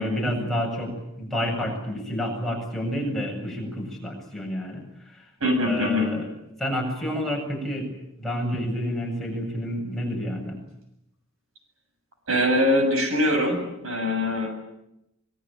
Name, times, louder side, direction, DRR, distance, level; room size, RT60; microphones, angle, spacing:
voice 1, 0.0-5.3 5.6-6.3 6.6-7.9 8.2-10.6, equal, ahead, -1 dB, 7.6 m, -29 dB
voice 2, 5.4-6.1 12.3-14.5, left 1 dB, 75° right, 6 dB, 7.4 m, -23 dB
25.5 x 22.0 x 9.0 m, 0.85 s
head